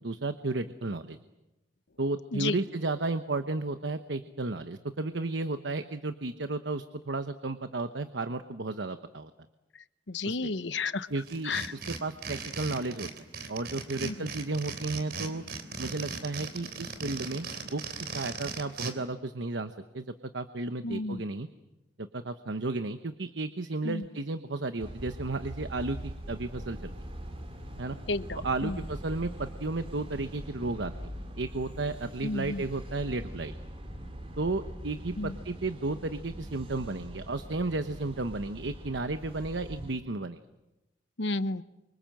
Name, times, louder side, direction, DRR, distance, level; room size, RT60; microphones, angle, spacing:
voice 1, 0.0-1.2 2.0-9.3 10.2-10.5 11.1-13.1 13.5-15.4 15.8-21.5 22.0-26.9 27.8-28.0 28.4-30.9 31.4-33.5 34.4-40.4, right 2 dB, 90° right, 10 dB, 1.1 m, -33 dB
voice 2, 10.1-11.1 11.5-11.6 14.0-14.3 20.8-21.2 23.8-24.0 28.1-28.8 32.2-32.6 35.2-35.3 41.2-41.6, left 3 dB, 85° left, 13 dB, 1.0 m, -32 dB
sound 1, 11.2-18.9, right 5 dB, 60° right, 3.3 m, -38 dB
sound 2, 24.8-39.9, equal, 35° right, 3.9 m, -42 dB
28.5 x 25.0 x 7.7 m, 0.99 s
head